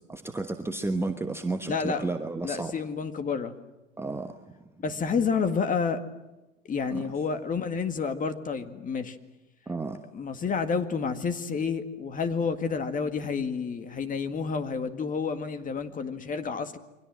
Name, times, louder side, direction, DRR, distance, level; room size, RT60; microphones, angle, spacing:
voice 1, 0.1-2.7 4.0-4.4 6.9-7.0 9.7-10.0, right 3 dB, 5° right, 6 dB, 1.2 m, -32 dB
voice 2, 1.7-2.0 2.4-3.5 4.8-6.0 6.7-9.2 10.1-16.8, left 5 dB, 20° left, 8 dB, 1.9 m, -29 dB
28.5 x 24.0 x 7.7 m, 1.0 s
hypercardioid pair, 100°, 39 cm